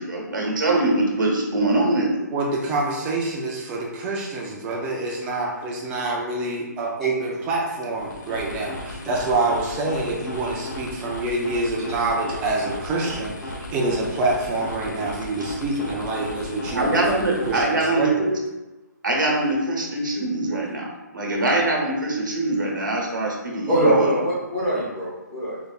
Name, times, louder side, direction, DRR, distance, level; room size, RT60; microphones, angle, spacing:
voice 1, 0.0-2.1 16.7-18.3 19.0-20.9 21.1-24.1, right 2 dB, 80° right, -1 dB, 1.0 m, -23 dB
voice 2, 2.3-18.3, right 2 dB, 15° right, -2 dB, 0.5 m, -26 dB
sound 1, 7.9-17.8, left 1 dB, 70° left, 0.9 m, -35 dB
voice 3, 23.7-25.6, right 1 dB, 5° left, -12 dB, 0.9 m, -22 dB
3.9 x 3.3 x 2.3 m, 1.1 s
hypercardioid pair, 155°, 10 cm